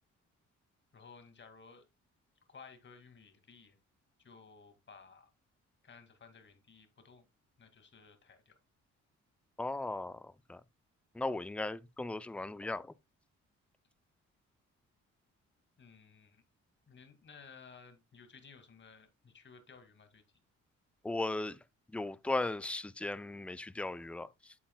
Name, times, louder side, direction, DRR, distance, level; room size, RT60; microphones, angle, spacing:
voice 1, 0.9-1.9 2.5-3.8 4.2-5.3 5.8-7.2 7.6-8.6 15.8-16.4 16.9-20.2, left 5 dB, 40° left, 2.1 m, -56 dB
voice 2, 9.6-10.6 11.1-12.9 21.0-21.6 21.9-24.5, left 2 dB, 5° left, 0.4 m, -37 dB
8.5 x 7.8 x 2.2 m
cardioid pair, 90°, 30 cm